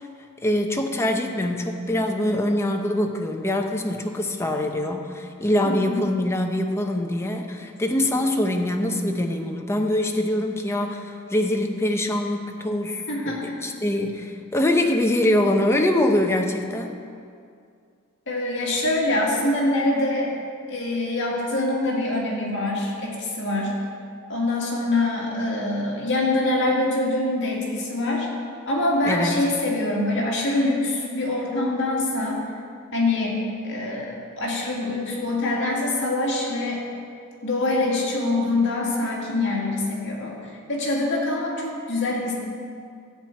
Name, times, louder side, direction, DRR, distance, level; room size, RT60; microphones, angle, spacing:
voice 1, 0.4-17.0 29.0-29.5, left 1 dB, 10° left, 3 dB, 0.7 m, -24 dB
voice 2, 5.6-6.0 13.1-13.4 18.3-20.3 20.7-23.7 24.3-28.3 28.7-32.4 32.9-33.4 33.6-36.8 37.4-40.3 40.7-42.3, left 2 dB, 60° left, -3 dB, 2.3 m, -24 dB
13.0 x 4.5 x 8.4 m, 2.3 s
head